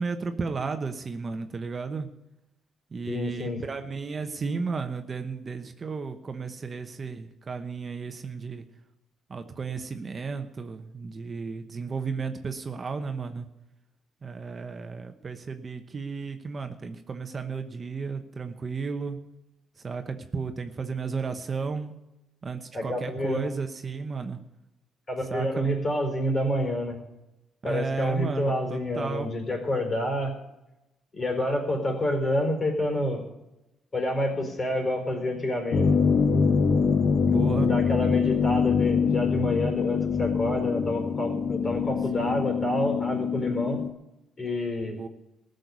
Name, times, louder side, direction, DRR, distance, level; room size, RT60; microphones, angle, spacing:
voice 1, 0.0-2.1 2.9-8.6 9.3-13.5 14.2-19.2 19.8-21.9 22.4-24.4 25.3-25.7 27.6-29.3 37.2-37.7 42.2-42.3 44.9-45.1, right 5 dB, 35° right, 7 dB, 1.0 m, -33 dB
voice 2, 3.1-3.6 22.7-23.5 25.1-27.0 27.6-30.3 31.1-33.2 33.9-35.8 37.6-43.8 44.4-45.0, left 1 dB, 35° left, 2 dB, 4.5 m, -28 dB
sound 1, 35.7-43.9, left 5 dB, 55° left, 1.0 m, -24 dB
15.5 x 6.6 x 9.5 m, 0.94 s
cardioid pair, 90°, 0 cm